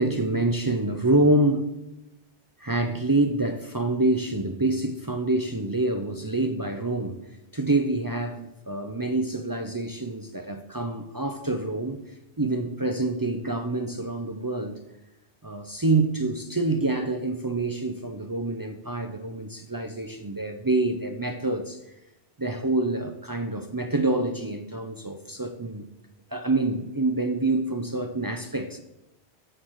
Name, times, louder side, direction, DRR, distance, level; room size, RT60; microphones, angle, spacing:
voice 1, 0.0-1.7 2.6-7.2 7.5-12.0 12.4-14.8 15.4-21.8 22.4-25.9 26.3-28.8, right 2 dB, 25° right, 5 dB, 0.5 m, -26 dB
6.6 x 6.4 x 7.4 m, 0.92 s
omnidirectional pair, 1.1 m